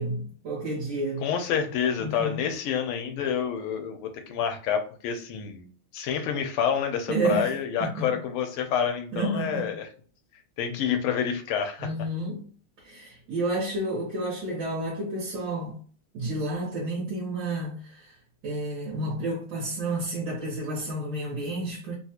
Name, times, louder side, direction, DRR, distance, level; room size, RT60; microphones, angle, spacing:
voice 1, 0.0-1.3 2.0-2.5 7.1-7.5 7.8-8.1 9.1-9.7 11.8-12.5 12.8-15.8 16.1-18.1 18.4-21.9, right 2 dB, 60° right, 1.7 m, -30 dB
voice 2, 1.2-5.7 5.9-9.9 10.6-11.9, left 8 dB, 85° left, 1.6 m, -28 dB
3.8 x 2.4 x 2.8 m
omnidirectional pair, 2.4 m